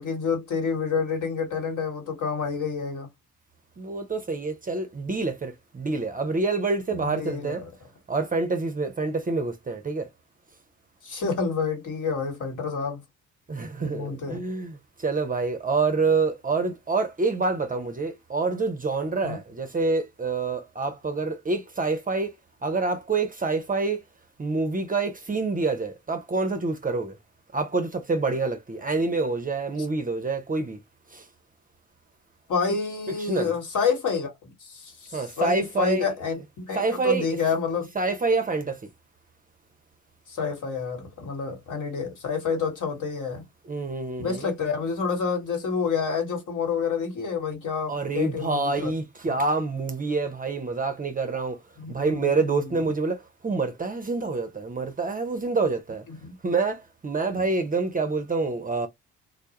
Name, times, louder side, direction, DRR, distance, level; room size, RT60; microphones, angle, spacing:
voice 1, 0.0-3.1 6.9-7.6 11.0-13.0 13.8-14.4 19.2-19.4 32.5-37.9 40.3-43.4 44.2-48.9 49.3-49.4 51.8-52.8 56.1-56.4 57.3-57.4, left 5 dB, 60° left, 1.3 m, -29 dB
voice 2, 3.8-7.6 8.1-10.1 13.5-22.3 22.6-24.0 24.4-27.2 27.5-30.8 31.1-31.2 33.1-33.6 35.1-36.4 36.7-37.3 37.9-38.8 43.6-44.5 47.9-51.6 51.9-56.0 56.4-58.9, right 3 dB, 25° right, 0.6 m, -27 dB
2.2 x 2.0 x 2.9 m
hypercardioid pair, 50°, 36 cm